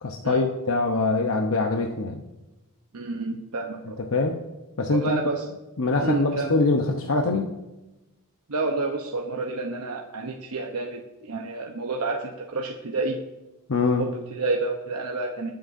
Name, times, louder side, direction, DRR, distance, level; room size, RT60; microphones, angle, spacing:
voice 1, 0.0-2.2 4.0-4.4 4.8-5.3 5.8-7.6 13.7-14.1, left 3 dB, 65° left, 3 dB, 0.9 m, -24 dB
voice 2, 2.9-4.0 4.9-5.4 6.0-6.5 8.5-13.2 14.0-15.5, right 3 dB, 80° right, 1 dB, 0.9 m, -29 dB
20.5 x 7.7 x 2.7 m, 1.0 s
head